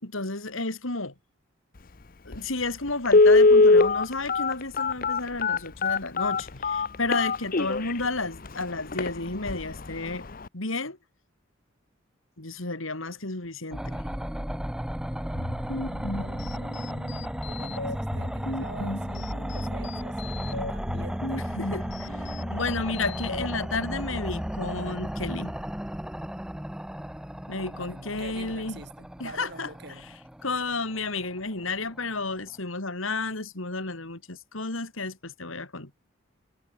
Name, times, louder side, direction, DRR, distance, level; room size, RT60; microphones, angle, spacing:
voice 1, 0.0-1.1 2.3-10.3 10.5-11.0 12.4-14.0 21.7-25.5 27.5-28.8 29.2-29.7 30.4-36.1, left 3 dB, 75° left, 3.6 m, -32 dB
Telephone, 2.3-2.4 3.1-7.9 8.5-8.6 8.9-9.1 9.5-9.8 10.1-10.2, left 3 dB, 45° left, 0.8 m, -20 dB
sound 1, 13.7-32.5, equal, 5° right, 0.7 m, -34 dB
voice 2, 15.1-21.5 27.6-30.1, right 2 dB, 55° right, 6.2 m, -47 dB
sound 2, 15.2-23.5, left 1 dB, 60° left, 5.6 m, -36 dB
head